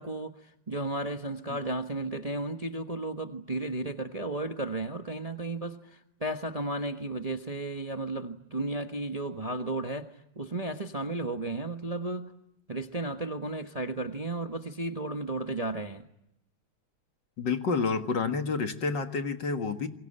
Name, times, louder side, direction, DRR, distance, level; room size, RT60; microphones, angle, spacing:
voice 1, 0.0-10.1 10.4-12.3 12.7-16.0, right 2 dB, 20° right, 1.0 m, -34 dB
voice 2, 17.4-19.9, left 4 dB, 55° left, 2.3 m, -29 dB
28.0 x 23.0 x 8.9 m
omnidirectional pair, 2.4 m